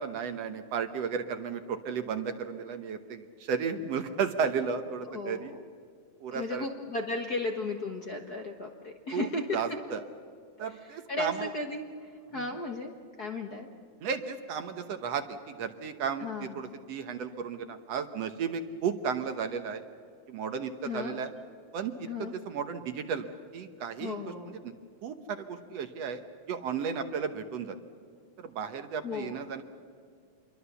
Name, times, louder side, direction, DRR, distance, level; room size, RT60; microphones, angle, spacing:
voice 1, 0.0-5.5 6.2-6.7 9.1-10.0 10.6-11.5 12.3-12.5 14.0-16.3 16.6-19.8 20.3-21.3 21.7-23.3 23.5-24.2 24.5-24.7 25.0-27.8 28.4-29.6, right 6 dB, 65° right, 8 dB, 2.0 m, -34 dB
voice 2, 5.1-5.6 6.3-9.8 10.7-12.9 13.2-13.7 16.2-16.8 20.8-21.2 22.1-22.3 24.0-24.6 29.0-29.4, left 3 dB, 45° left, 3 dB, 1.3 m, -35 dB
27.5 x 23.0 x 7.0 m, 2.2 s
omnidirectional pair, 3.4 m